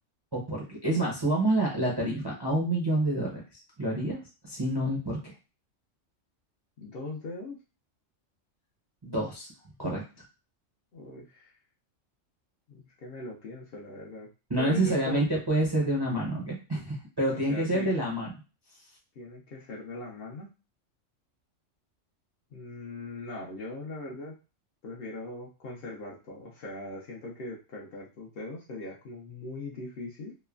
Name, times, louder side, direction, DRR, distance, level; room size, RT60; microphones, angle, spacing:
voice 1, 0.3-3.4 3.8-4.2 4.4-5.3 9.0-9.5 9.8-10.0 14.5-18.3, right 1 dB, 30° right, -4 dB, 0.5 m, -28 dB
voice 2, 6.8-7.6 10.9-11.6 12.7-14.3 14.6-15.2 17.5-17.9 19.2-20.5 22.5-24.3 24.8-30.4, left 2 dB, 55° left, -3 dB, 0.7 m, -40 dB
3.0 x 2.1 x 2.3 m, 0.32 s
omnidirectional pair, 1.3 m